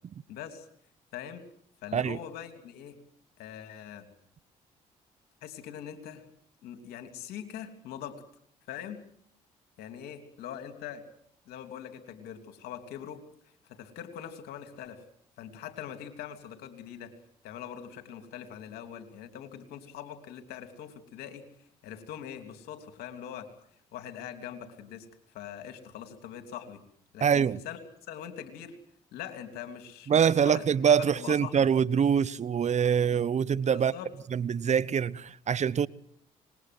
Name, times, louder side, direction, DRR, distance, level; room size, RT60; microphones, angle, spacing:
voice 1, 0.3-0.7 1.1-1.4 1.8-3.0 3.4-4.1 5.4-6.2 6.6-8.2 8.7-9.0 9.8-11.0 11.5-13.2 13.7-15.0 15.4-17.1 17.4-21.4 21.8-23.5 23.9-25.1 25.3-26.8 27.1-27.8 28.1-28.8 29.1-30.6 31.0-31.7 33.7-34.1, left 9 dB, 75° left, 3.2 m, -42 dB
voice 2, 27.2-27.6 30.1-33.9 34.3-35.9, right 7 dB, 45° right, 1.0 m, -24 dB
26.0 x 21.0 x 7.8 m
supercardioid pair, 60°, 16 cm